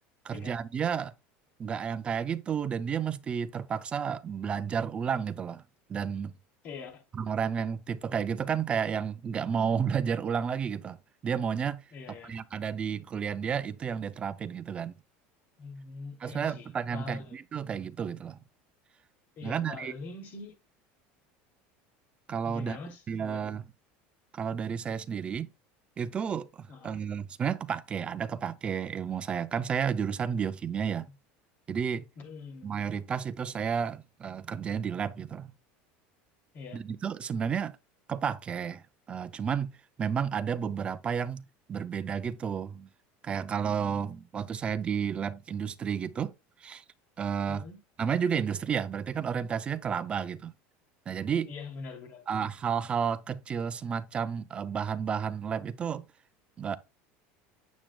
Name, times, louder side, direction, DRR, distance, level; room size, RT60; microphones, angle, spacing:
voice 1, 0.2-1.1 1.6-5.6 5.9-6.3 7.1-11.0 11.2-11.8 12.2-14.9 16.2-18.4 19.4-19.9 22.3-22.8 23.1-23.6 24.3-25.5 26.0-31.1 31.7-32.1 32.6-35.5 36.7-37.7 38.1-38.8 39.1-39.7 40.0-42.9 43.2-46.3 46.6-46.8 47.2-47.7 48.0-50.5 51.1-51.5 52.3-56.0 56.6-56.8, right 7 dB, 20° right, 0.5 m, -31 dB
voice 2, 6.6-7.0 11.9-12.3 15.6-17.4 19.4-20.5 22.5-23.4 26.7-27.0 32.2-32.7 36.5-36.8 47.5-47.8 51.5-52.5, left 4 dB, 40° left, 3.0 m, -43 dB
9.1 x 7.4 x 2.3 m
cardioid pair, 155°, 5 cm